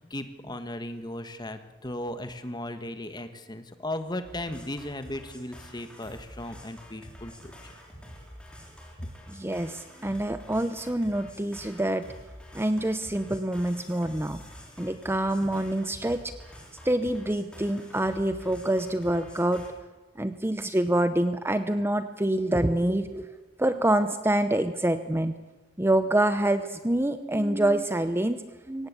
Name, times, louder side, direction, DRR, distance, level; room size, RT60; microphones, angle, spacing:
voice 1, 0.0-7.7 9.0-9.1, left 1 dB, 25° left, 9 dB, 1.6 m, -36 dB
sound 1, 4.2-19.7, equal, 5° left, 4.5 m, -47 dB
voice 2, 9.3-12.1 12.5-14.4 14.8-16.2 16.8-19.7 20.2-23.3 23.6-25.4 25.8-28.9, right 1 dB, 15° right, 10 dB, 0.8 m, -26 dB
23.5 x 18.0 x 8.3 m, 1.2 s
head